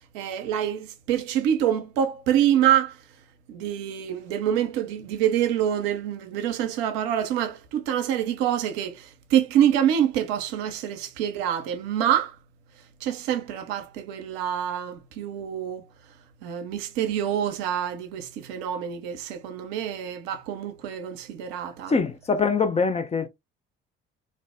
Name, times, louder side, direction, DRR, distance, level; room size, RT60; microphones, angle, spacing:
voice 1, 0.1-3.0 3.5-12.4 13.0-15.8 16.4-21.9, right 10 dB, 65° right, 0.6 m, -26 dB
voice 2, 21.9-23.3, left 4 dB, 20° left, 0.5 m, -23 dB
2.5 x 2.0 x 3.3 m
figure-of-eight pair, 50°, 32 cm